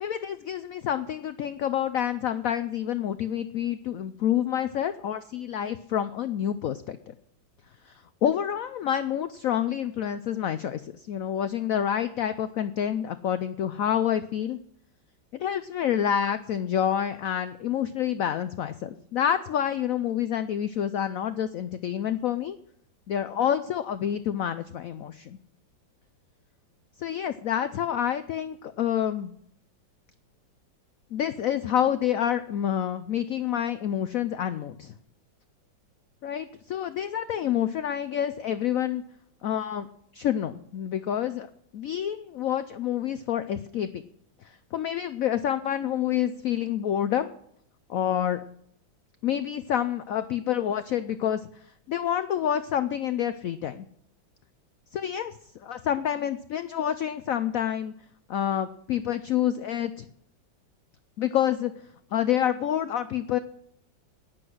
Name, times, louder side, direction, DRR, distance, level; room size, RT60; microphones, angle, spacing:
voice 1, 0.0-7.1 7.9-14.6 15.3-22.6 23.1-25.4 27.0-29.3 31.1-35.0 36.2-39.0 39.4-39.9 40.1-41.5 41.7-44.0 44.4-47.3 47.9-48.4 49.2-51.4 51.9-53.9 54.9-57.9 58.3-60.1 61.2-61.7 62.1-63.4, left 10 dB, 85° left, 12 dB, 0.7 m, -28 dB
11.0 x 9.6 x 6.2 m, 0.69 s
omnidirectional pair, 2.1 m